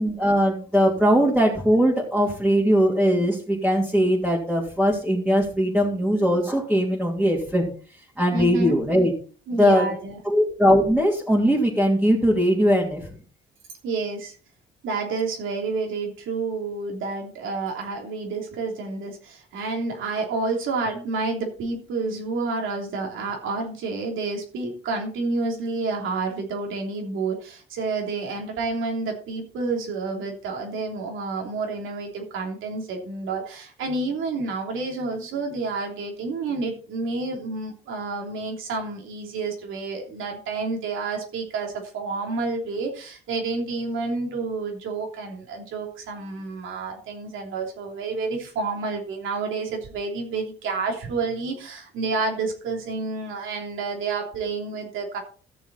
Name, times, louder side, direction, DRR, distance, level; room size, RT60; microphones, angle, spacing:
voice 1, 0.0-7.7 8.2-9.1 9.5-9.9 10.2-13.1, equal, 5° right, -5 dB, 3.0 m, -20 dB
voice 2, 8.3-8.8 9.5-10.2 13.8-14.4 14.8-55.2, right 3 dB, 80° right, 2 dB, 3.1 m, -29 dB
14.0 x 6.9 x 4.2 m, 0.41 s
cardioid pair, 90°, 20 cm